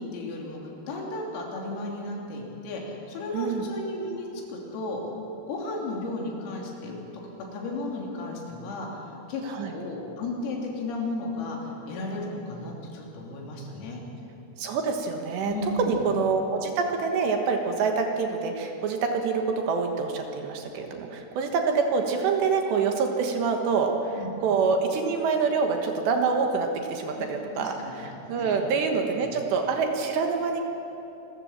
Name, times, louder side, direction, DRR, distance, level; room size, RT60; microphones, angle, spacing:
voice 1, 0.0-5.0 5.4-7.0 7.5-14.0 15.4-16.0 24.2-24.3 27.6-27.9 28.4-28.6 29.2-29.3, left 2 dB, 80° left, -1 dB, 5.8 m, -34 dB
voice 2, 3.3-3.6 9.4-9.7 14.6-15.5 15.8-30.6, right 5 dB, 65° right, 3 dB, 3.2 m, -26 dB
27.0 x 15.0 x 7.4 m, 2.9 s
omnidirectional pair, 6.0 m